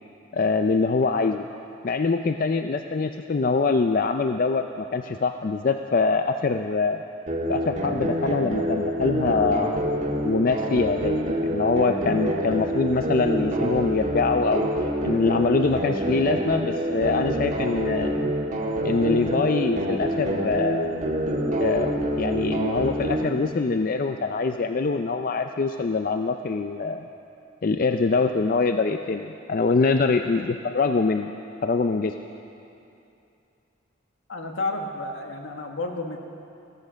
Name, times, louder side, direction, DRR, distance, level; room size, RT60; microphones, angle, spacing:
voice 1, 0.3-1.4 1.8-7.0 7.5-14.7 15.0-18.3 18.8-21.0 21.6-27.1 27.6-31.3 31.6-32.1, left 4 dB, 45° left, 7 dB, 0.4 m, -24 dB
sound 1, 7.3-23.3, right 1 dB, 35° right, 1.6 m, -26 dB
voice 2, 34.3-36.2, left 2 dB, 75° left, 3 dB, 1.6 m, -31 dB
16.5 x 13.5 x 6.4 m, 2.7 s
head